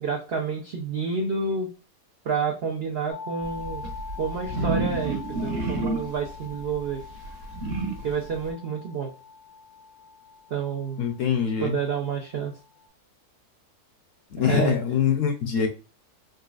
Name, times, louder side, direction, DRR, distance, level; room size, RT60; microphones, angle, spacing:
voice 1, 0.0-1.7 2.2-3.8 4.2-7.0 8.0-9.1 10.5-11.0 11.6-12.5 14.4-14.8, right 5 dB, 75° right, 1 dB, 0.5 m, -29 dB
sound 1, 3.1-12.9, left 5 dB, 90° left, 1.3 m, -44 dB
sound 2, 3.4-8.5, right 3 dB, 50° right, 0.9 m, -30 dB
voice 2, 11.0-11.8 14.3-15.7, left 7 dB, 65° left, 4 dB, 0.9 m, -24 dB
3.9 x 2.4 x 2.3 m, 0.33 s
omnidirectional pair, 1.7 m